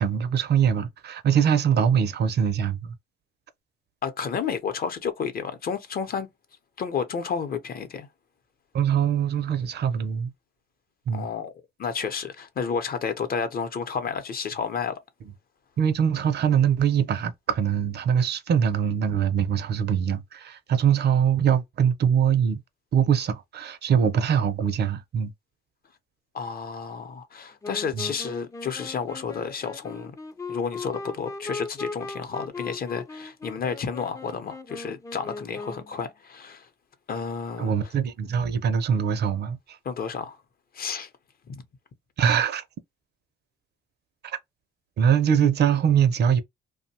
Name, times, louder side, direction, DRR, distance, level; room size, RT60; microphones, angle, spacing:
voice 1, 0.0-2.9 8.7-10.3 11.1-11.3 15.8-22.6 22.9-25.3 27.9-28.1 37.6-39.8 42.2-42.6 44.2-44.4 45.0-46.4, right 8 dB, 55° right, 0.5 m, -23 dB
voice 2, 4.0-6.3 6.8-8.1 11.1-11.5 11.8-15.0 26.3-30.2 30.5-36.7 37.1-37.7 39.8-40.4 40.7-41.1 41.5-41.6, left 6 dB, 50° left, 0.7 m, -31 dB
Wind instrument woodwind instrument, 27.6-36.0, left 3 dB, 15° left, 0.4 m, -38 dB
2.6 x 2.1 x 2.8 m
cardioid pair, 90°, 20 cm